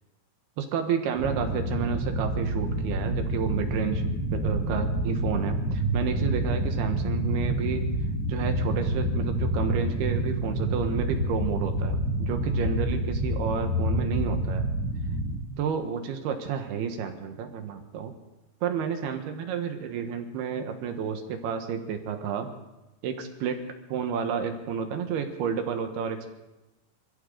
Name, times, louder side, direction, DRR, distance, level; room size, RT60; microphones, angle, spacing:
voice 1, 0.6-4.0 4.3-7.8 8.3-14.6 15.6-18.1 18.6-22.5 23.0-23.6 23.9-26.3, right 7 dB, 70° right, 6 dB, 3.1 m, -31 dB
sound 1, 1.2-15.4, right 1 dB, 50° left, 6.0 m, -28 dB
26.0 x 14.5 x 3.9 m, 0.97 s
omnidirectional pair, 5.0 m